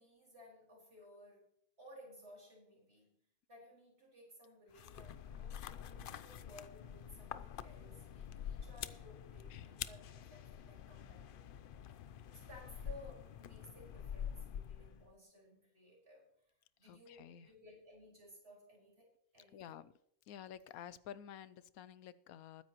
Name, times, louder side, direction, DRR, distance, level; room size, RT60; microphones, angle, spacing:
voice 1, 0.0-1.5 1.8-11.7 12.3-19.8, equal, 45° right, 5.2 m, -59 dB
sound 1, 4.7-15.1, left 9 dB, 65° left, 0.5 m, -47 dB
voice 2, 16.8-17.5 19.5-19.9 20.3-22.6, left 10 dB, 80° left, 1.1 m, -51 dB
20.5 x 9.9 x 3.0 m
omnidirectional pair, 1.5 m